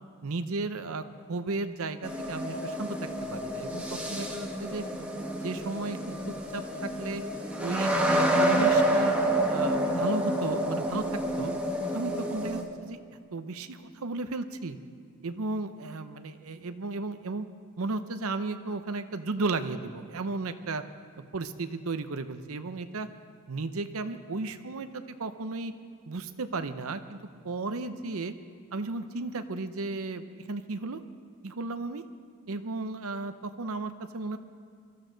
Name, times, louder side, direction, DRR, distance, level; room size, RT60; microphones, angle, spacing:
voice 1, 0.2-3.0 3.3-4.8 5.4-6.0 6.3-7.2 7.6-9.1 9.5-11.0 11.4-11.5 11.9-13.0 13.3-14.8 15.2-17.5 17.8-20.8 21.3-23.1 23.5-25.7 26.1-27.2 27.4-28.3 28.7-31.0 31.4-32.0 32.5-34.4, right 3 dB, 70° right, 10 dB, 0.7 m, -34 dB
sound 1, 2.0-12.6, right 1 dB, 5° right, 1.4 m, -28 dB
22.5 x 13.5 x 3.9 m, 2.3 s
head